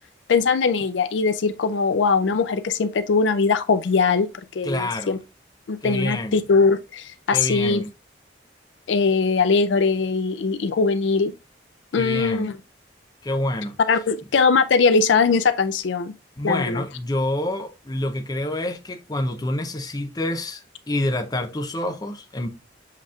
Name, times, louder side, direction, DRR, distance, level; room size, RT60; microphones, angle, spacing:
voice 1, 0.3-4.3 4.5-5.2 5.7-7.8 8.9-11.3 11.9-12.6 13.9-16.1 16.4-16.8, left 4 dB, 85° left, 0.4 m, -21 dB
voice 2, 4.6-5.2 5.8-6.4 7.3-7.9 11.9-12.5 13.2-13.8 16.4-22.5, left 1 dB, 20° left, 0.5 m, -27 dB
7.4 x 2.9 x 2.4 m
head